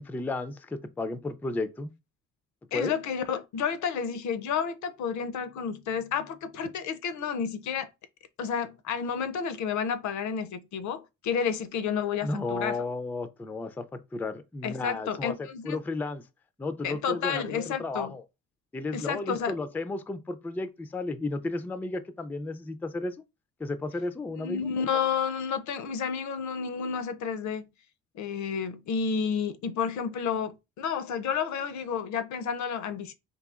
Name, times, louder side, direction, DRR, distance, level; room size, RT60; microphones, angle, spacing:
voice 1, 0.0-1.9 2.7-2.9 12.2-16.2 16.6-18.2 18.7-23.2 23.6-24.7, left 3 dB, 5° left, 0.3 m, -33 dB
voice 2, 2.7-7.9 8.4-12.8 14.6-15.8 16.8-18.1 18.9-19.5 24.4-27.7 28.1-33.1, left 6 dB, 70° left, 0.5 m, -31 dB
3.9 x 2.7 x 2.4 m
cardioid pair, 90°, 30 cm